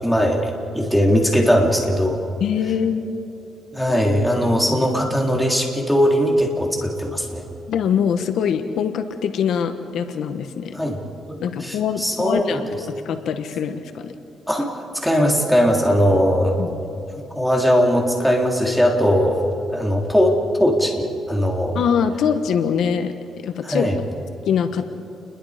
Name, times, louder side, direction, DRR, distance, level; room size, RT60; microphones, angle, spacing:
voice 1, 0.0-2.2 3.7-7.4 10.7-11.0 11.3-12.6 14.5-14.7 14.9-16.6 17.4-19.4 19.7-21.8 23.6-24.0, equal, ahead, -1 dB, 3.5 m, -19 dB
voice 2, 2.4-3.0 7.7-10.8 11.4-14.1 16.6-16.8 21.7-23.1 23.4-23.9 24.5-24.9, left 7 dB, 70° left, 8 dB, 1.3 m, -23 dB
29.0 x 22.0 x 5.1 m, 2.9 s
cardioid pair, 130°, 0 cm